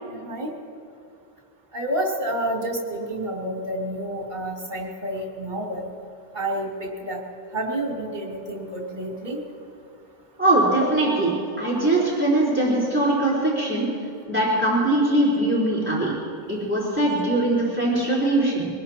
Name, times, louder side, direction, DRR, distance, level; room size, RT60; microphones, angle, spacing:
voice 1, 0.1-0.5 1.7-5.9 6.3-7.2 7.5-9.4, right 1 dB, 40° right, -3 dB, 2.8 m, -29 dB
voice 2, 10.4-13.9 14.3-16.1 16.5-18.7, right 1 dB, 10° right, -7 dB, 3.8 m, -21 dB
23.5 x 19.5 x 2.9 m, 2.5 s
omnidirectional pair, 1.2 m